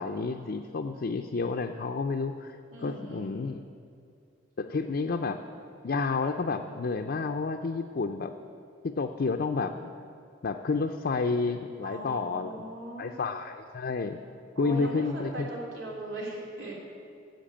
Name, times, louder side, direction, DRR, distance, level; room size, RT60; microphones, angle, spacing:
voice 1, 0.0-2.6 2.8-3.6 4.6-5.4 5.8-8.3 8.8-9.9 10.4-12.7 13.0-14.2 14.6-15.5, left 4 dB, 55° left, 4 dB, 0.5 m, -30 dB
voice 2, 2.7-3.2 11.8-13.1 14.5-16.7, right 1 dB, 90° right, -3 dB, 3.1 m, -39 dB
10.5 x 7.8 x 8.6 m, 2.5 s
head